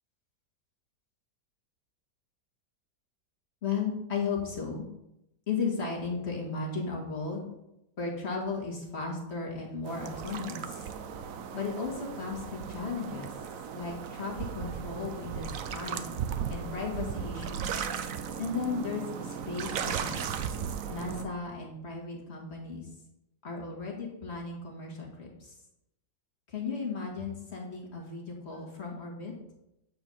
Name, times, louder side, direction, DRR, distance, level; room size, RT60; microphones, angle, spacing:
voice 1, 3.6-4.9 5.5-7.5 8.0-10.9 11.5-13.3 13.7-16.1 16.5-17.7 18.4-20.3 20.9-22.9 23.4-25.5 26.5-29.3, left 4 dB, 40° left, -1 dB, 2.2 m, -35 dB
sound 1, 9.8-21.2, right 7 dB, 60° right, 1.0 m, -36 dB
9.1 x 4.7 x 7.1 m, 0.87 s
omnidirectional pair, 1.9 m